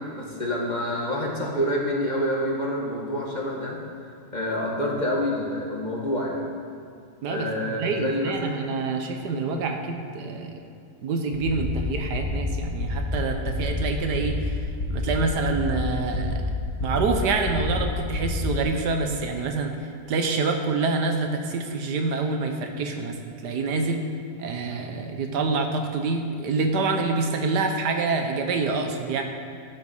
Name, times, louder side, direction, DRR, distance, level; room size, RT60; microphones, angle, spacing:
voice 1, 0.0-3.8 4.3-6.4 7.3-8.5, equal, 30° left, -2 dB, 1.6 m, -27 dB
voice 2, 7.2-10.5 11.0-14.6 14.9-16.4 16.8-19.8 20.1-23.2 23.4-24.0 24.4-29.2, right 4 dB, 90° right, 4 dB, 1.6 m, -26 dB
sound 1, 11.3-18.6, left 2 dB, 80° left, 2.1 m, -29 dB
13.0 x 7.9 x 5.4 m, 2.4 s
omnidirectional pair, 1.7 m